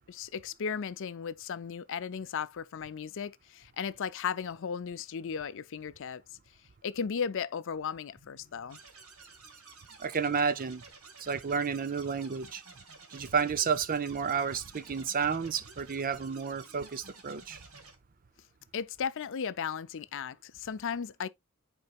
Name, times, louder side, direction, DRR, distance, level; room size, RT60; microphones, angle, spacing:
voice 1, 0.1-6.2 6.8-8.8 18.7-21.3, left 6 dB, 60° left, 0.5 m, -36 dB
sound 1, 8.7-18.0, right 4 dB, 75° right, 1.8 m, -52 dB
voice 2, 10.0-10.8 11.2-12.6 13.1-17.6, right 6 dB, 40° right, 0.5 m, -31 dB
9.7 x 4.5 x 2.4 m
head